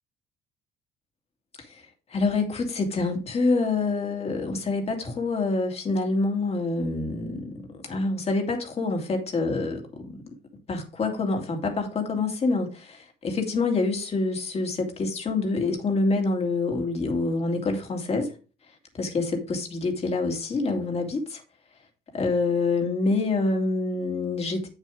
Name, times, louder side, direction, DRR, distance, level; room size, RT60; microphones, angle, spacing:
voice 1, 2.1-10.2 10.7-18.3 18.9-21.4 22.1-24.7, left 3 dB, 40° left, 2.5 m, -26 dB
8.5 x 7.2 x 3.6 m
cardioid pair, 110°, 17 cm